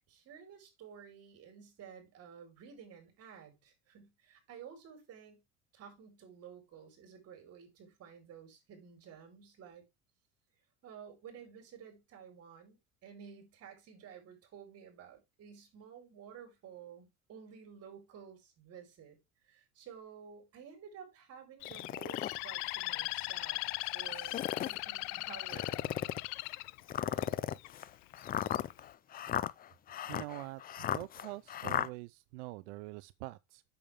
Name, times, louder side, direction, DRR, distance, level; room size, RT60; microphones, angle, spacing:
voice 1, 0.0-5.4 5.7-9.8 10.8-19.2 19.4-23.6 23.9-25.9, right 7 dB, 45° right, 4.7 m, -53 dB
Bird, 21.6-27.7 28.2-28.6, left 23 dB, 75° left, 0.5 m, -39 dB
sound 1, 21.7-22.4 23.0-23.1 24.1-24.8 25.5-26.3 26.9-31.9, left 10 dB, 25° left, 0.5 m, -36 dB
voice 2, 30.1-33.6, right 20 dB, 90° right, 0.6 m, -45 dB
8.5 x 7.0 x 3.6 m
supercardioid pair, 130°, 33 cm